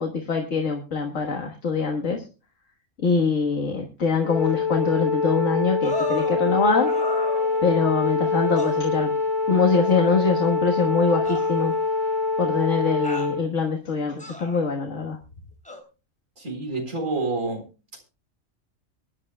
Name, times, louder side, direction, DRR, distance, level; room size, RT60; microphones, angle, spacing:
voice 1, 0.0-2.2 3.0-6.9 7.6-9.1 9.5-11.7 12.4-15.2, left 4 dB, 75° left, 2 dB, 1.8 m, -23 dB
Wind instrument woodwind instrument, 4.2-13.4, left 3 dB, 40° right, 4.5 m, -24 dB
sound 1, 5.8-6.4 6.9-7.9 8.6-8.8 9.9-10.0 11.2-12.1 13.0-13.3 14.2-14.7 15.6-15.8, left 1 dB, 5° left, 3.2 m, -35 dB
voice 2, 16.4-17.6, right 3 dB, 80° right, 3 dB, 4.4 m, -28 dB
23.0 x 11.0 x 2.2 m, 0.31 s
omnidirectional pair, 1.3 m